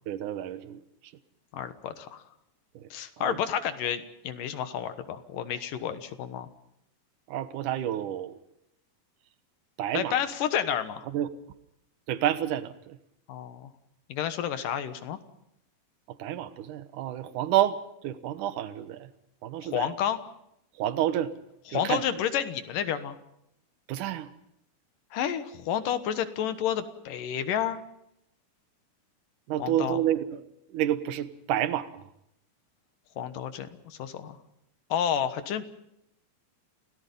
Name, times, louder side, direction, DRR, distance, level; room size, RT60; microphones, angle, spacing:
voice 1, 0.1-0.8 2.8-2.9 3.2-3.4 7.3-8.4 9.8-10.1 11.1-11.3 12.1-13.0 16.2-19.1 19.4-19.9 20.8-21.3 21.7-22.1 23.9-24.3 29.5-30.4 30.7-32.1, right 12 dB, 70° right, 11 dB, 2.5 m, -29 dB
voice 2, 1.5-2.2 2.9-6.5 9.9-11.0 13.3-13.7 14.1-15.2 19.6-20.2 21.7-23.2 25.1-27.8 29.6-30.0 33.2-34.4 34.9-35.7, left 9 dB, 80° left, 10 dB, 2.9 m, -30 dB
28.5 x 18.0 x 5.4 m, 0.78 s
omnidirectional pair, 3.9 m